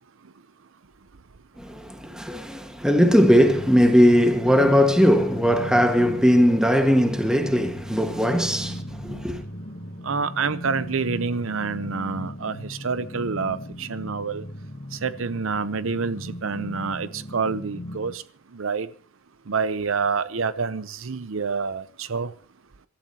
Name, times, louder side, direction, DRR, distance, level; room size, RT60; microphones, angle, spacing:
voice 1, 1.6-9.4, equal, 5° right, 1.6 m, -19 dB
sound 1, 2.9-18.1, equal, 50° left, 1.9 m, -37 dB
voice 2, 10.0-14.4 15.0-18.2 18.5-18.9 19.5-22.3, right 5 dB, 80° right, 0.7 m, -27 dB
27.0 x 13.0 x 2.9 m
head